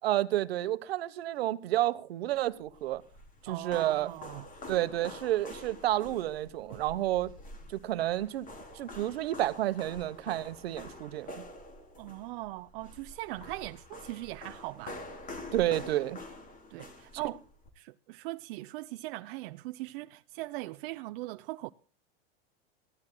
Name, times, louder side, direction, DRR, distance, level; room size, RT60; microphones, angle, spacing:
voice 1, 0.0-3.0 3.4-4.1 4.7-7.3 7.7-8.5 8.7-11.4 15.5-16.2, right 14 dB, 80° right, 1.3 m, -30 dB
sound 1, 2.7-17.7, left 2 dB, 25° left, 3.9 m, -47 dB
voice 2, 3.5-4.5 12.0-15.0 16.7-17.4 17.8-21.7, right 19 dB, 60° right, 0.7 m, -40 dB
24.0 x 15.5 x 2.3 m
hypercardioid pair, 110°, 30 cm